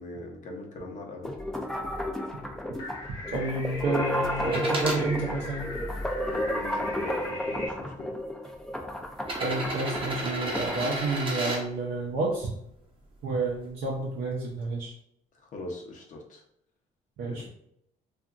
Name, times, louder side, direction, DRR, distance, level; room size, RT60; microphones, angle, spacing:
voice 1, 0.0-1.4 6.2-8.1 15.4-16.4 17.2-17.5, left 2 dB, 50° left, 1 dB, 0.7 m, -40 dB
sound 1, 1.2-10.8, equal, 5° left, 0.3 m, -33 dB
sound 2, 2.8-7.7, left 2 dB, 85° left, 0.8 m, -40 dB
voice 2, 3.3-5.7 9.4-12.6 13.2-14.9 17.2-17.5, right 2 dB, 80° right, -4 dB, 0.6 m, -30 dB
sound 3, 4.4-5.0 5.7-6.8 7.8-7.9 9.2-11.6 13.5-13.6, right 2 dB, 30° right, 0.7 m, -32 dB
2.8 x 2.4 x 2.4 m, 0.74 s
cardioid pair, 110°, 17 cm